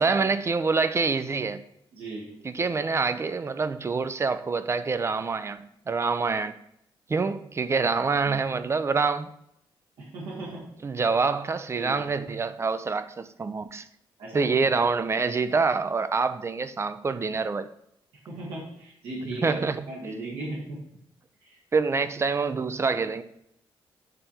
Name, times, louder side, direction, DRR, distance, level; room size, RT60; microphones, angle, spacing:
voice 1, 0.0-1.6 2.4-6.6 7.1-9.3 10.8-13.9 14.3-17.7 19.3-19.9 21.7-23.2, right 4 dB, 30° right, 0.5 m, -26 dB
voice 2, 1.9-2.3 7.8-8.0 8.3-8.4 10.0-10.7 11.7-12.1 14.2-14.7 18.1-20.8 21.4-21.6, right 2 dB, 85° right, 2.1 m, -37 dB
8.9 x 3.4 x 4.3 m
cardioid pair, 105°, 9 cm